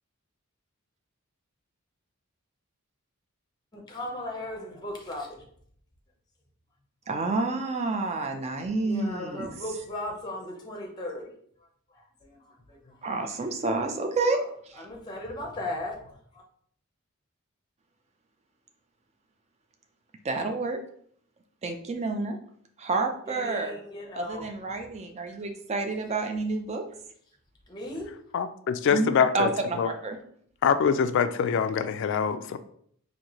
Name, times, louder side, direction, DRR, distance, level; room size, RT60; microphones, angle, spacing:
voice 1, 3.7-5.4 8.8-11.3 11.9-13.0 13.3-13.4 14.3-16.4 23.3-24.5 27.7-28.1, left 1 dB, 20° left, 1 dB, 0.6 m, -37 dB
voice 2, 7.1-9.5 13.0-14.4 20.2-20.8 21.6-22.4 22.8-23.7 24.2-26.8 28.9-30.2, right 3 dB, 30° right, 5 dB, 0.4 m, -29 dB
voice 3, 28.3-29.9 30.6-32.6, left 6 dB, 60° left, 11 dB, 0.3 m, -24 dB
4.3 x 2.7 x 2.9 m, 0.64 s
head